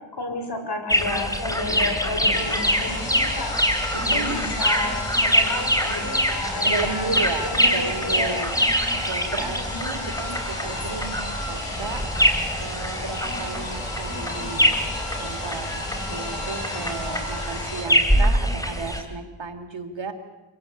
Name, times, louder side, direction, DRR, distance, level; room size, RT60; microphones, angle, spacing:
voice 1, 0.1-7.2 7.4-8.5 9.5-9.9, left 2 dB, 50° left, 5 dB, 5.5 m, -32 dB
sound 1, 0.9-19.0, equal, 5° left, 3.5 m, -24 dB
sound 2, 2.3-17.8, left 2 dB, 90° left, 5.9 m, -34 dB
voice 2, 3.9-4.3 6.6-8.5 9.0-12.0 12.6-14.8 15.2-15.8 16.1-20.1, right 4 dB, 65° right, 6 dB, 2.9 m, -33 dB
25.5 x 17.0 x 8.4 m, 1.1 s
cardioid pair, 50°, 49 cm